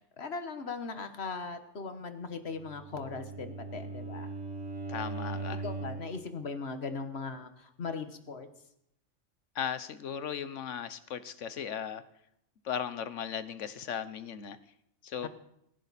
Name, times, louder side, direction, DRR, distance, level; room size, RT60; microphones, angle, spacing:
voice 1, 0.2-4.3 5.6-8.5 15.2-15.3, left 4 dB, 60° left, 8 dB, 1.6 m, -39 dB
Bowed string instrument, 2.5-6.2, right 3 dB, 60° right, 5.2 m, -39 dB
voice 2, 4.9-5.6 9.5-12.0 12.6-14.6 15.0-15.3, left 8 dB, 90° left, 13 dB, 1.3 m, -37 dB
18.0 x 16.0 x 4.2 m, 0.76 s
omnidirectional pair, 1.2 m